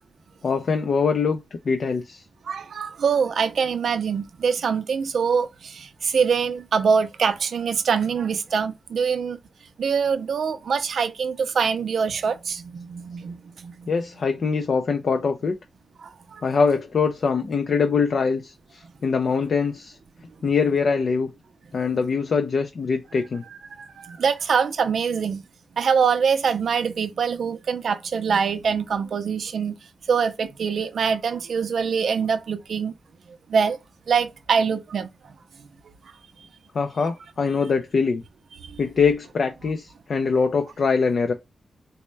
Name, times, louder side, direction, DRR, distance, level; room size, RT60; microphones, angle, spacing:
voice 1, 0.4-1.4 1.7-2.2 13.9-15.6 16.4-20.0 20.4-21.3 21.7-23.4 36.7-38.2 38.8-41.3, left 5 dB, 55° left, 0.4 m, -23 dB
voice 2, 2.4-9.4 9.8-13.9 16.0-16.5 23.7-25.4 25.8-29.8 30.1-32.9 33.5-33.8 34.1-35.1 37.0-37.1 38.6-38.8, right 6 dB, 70° right, 0.4 m, -24 dB
4.1 x 2.1 x 3.1 m
wide cardioid pair, 160°, 0 cm